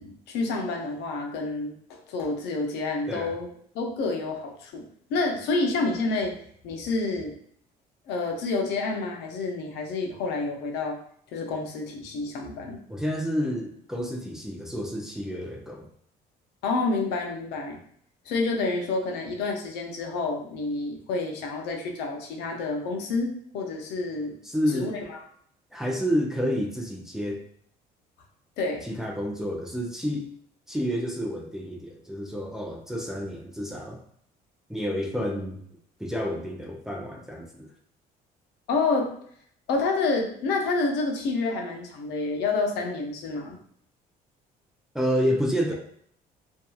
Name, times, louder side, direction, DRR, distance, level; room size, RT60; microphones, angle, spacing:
voice 1, 0.0-3.5 3.7-4.8 5.1-6.3 6.6-7.4 8.1-11.0 11.3-12.8 16.6-17.8 18.3-24.3 24.7-25.2 28.6-28.8 38.7-39.1 39.7-43.6, left 3 dB, 85° left, 1 dB, 0.6 m, -28 dB
voice 2, 3.1-3.4 12.9-15.9 24.4-24.9 25.7-27.4 28.8-30.3 30.7-34.0 34.7-35.6 36.0-37.7 44.9-45.7, equal, 5° right, -1 dB, 0.4 m, -29 dB
2.6 x 2.3 x 2.3 m, 0.64 s
cardioid pair, 110°, 17 cm